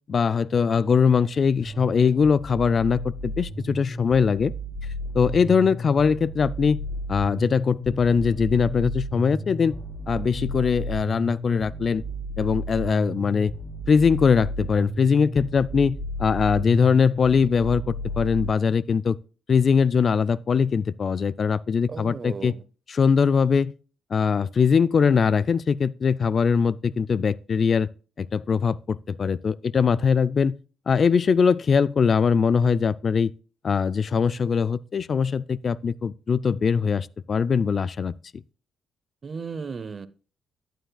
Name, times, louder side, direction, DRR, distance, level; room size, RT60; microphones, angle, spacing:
voice 1, 0.1-4.5 5.1-6.8 7.1-9.8 10.1-12.0 12.4-13.5 13.9-19.2 19.5-22.5 22.9-23.7 24.1-27.9 28.2-30.6 30.9-33.3 33.6-38.4, left 6 dB, 45° left, 0.3 m, -21 dB
sound 1, 1.6-18.5, equal, 25° left, 3.0 m, -33 dB
voice 2, 21.9-22.6 39.2-40.1, right 5 dB, 40° right, 0.7 m, -35 dB
11.5 x 9.0 x 2.3 m
cardioid pair, 90°, 0 cm